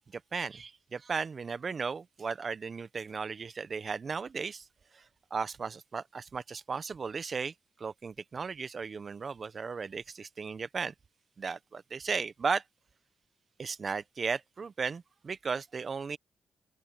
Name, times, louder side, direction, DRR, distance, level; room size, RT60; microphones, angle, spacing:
voice 1, 0.1-4.6 4.9-5.0 5.3-7.5 7.8-10.9 11.4-12.6 13.6-16.2, right 5 dB, 50° right, 1.3 m, -35 dB
hypercardioid pair, 45°, 0 cm